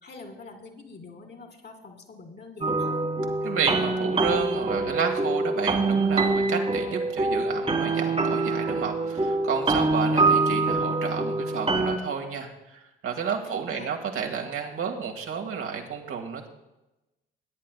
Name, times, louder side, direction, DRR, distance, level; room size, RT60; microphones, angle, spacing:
voice 1, 0.0-3.0 13.5-13.9, left 3 dB, 35° left, 4 dB, 2.4 m, -45 dB
sound 1, 2.6-12.0, right 3 dB, 20° right, 1.8 m, -25 dB
voice 2, 3.4-16.5, right 6 dB, 50° right, 2 dB, 2.0 m, -31 dB
19.5 x 10.5 x 2.3 m, 0.97 s
figure-of-eight pair, 50°, 29 cm